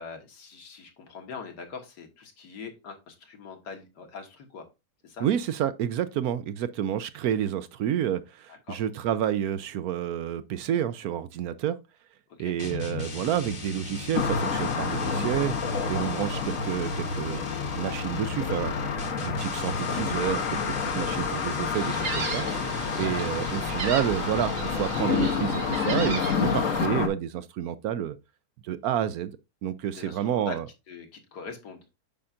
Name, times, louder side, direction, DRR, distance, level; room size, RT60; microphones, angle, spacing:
voice 1, 0.0-4.7 5.0-5.3 8.5-8.9 12.4-12.6 16.3-16.5 29.9-30.6 30.9-31.8, left 5 dB, 80° left, 2.0 m, -42 dB
voice 2, 5.2-11.8 12.4-15.5 15.9-17.5 17.8-22.4 22.9-28.2 28.6-29.3 29.6-30.7, right 10 dB, 70° right, 1.0 m, -29 dB
sound 1, 12.6-25.7, left 4 dB, 30° left, 1.1 m, -37 dB
sound 2, 14.1-27.1, left 5 dB, 55° left, 1.2 m, -29 dB
Gull seagull, 21.7-26.9, right 4 dB, 50° right, 1.1 m, -36 dB
8.6 x 5.7 x 2.5 m
omnidirectional pair, 1.8 m